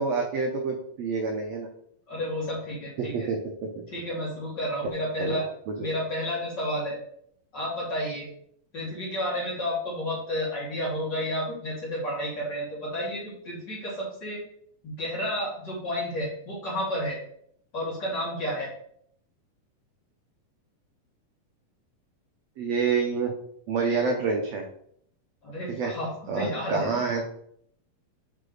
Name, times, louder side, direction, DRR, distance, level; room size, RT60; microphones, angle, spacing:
voice 1, 0.0-1.7 3.0-3.4 3.8-3.9 5.2-5.4 5.7-5.9 22.6-23.3 23.7-24.6 25.7-25.9 26.3-27.3, right 4 dB, 75° right, 2 dB, 1.6 m, -27 dB
voice 2, 2.1-3.3 3.9-5.5 5.8-7.0 7.5-8.3 8.7-14.4 14.8-17.2 17.7-18.7 25.4-27.0, equal, 35° left, -6 dB, 2.9 m, -31 dB
8.3 x 4.7 x 3.9 m, 0.67 s
omnidirectional pair, 4.0 m